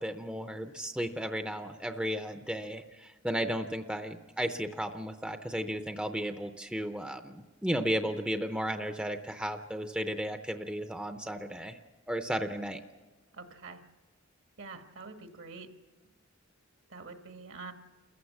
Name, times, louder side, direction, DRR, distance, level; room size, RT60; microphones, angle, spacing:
voice 1, 0.0-11.8 12.1-12.8, equal, 5° right, 7 dB, 0.7 m, -34 dB
voice 2, 13.3-13.8 14.6-15.7 16.9-17.7, right 4 dB, 65° right, 6 dB, 1.6 m, -45 dB
28.5 x 14.5 x 7.3 m, 1.3 s
head